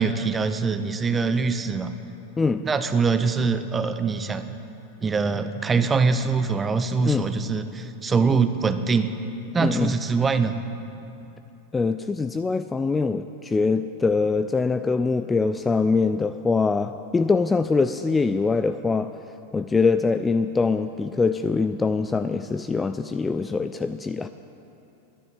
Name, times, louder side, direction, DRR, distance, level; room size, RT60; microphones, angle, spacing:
voice 1, 0.0-1.9 2.6-4.4 5.0-9.1 9.5-10.6, right 5 dB, 15° right, 10 dB, 0.7 m, -23 dB
voice 2, 9.6-9.9 11.7-19.1 19.5-24.3, left 4 dB, 15° left, 10 dB, 0.3 m, -23 dB
11.0 x 10.5 x 8.7 m, 2.8 s
figure-of-eight pair, 90°, 0 cm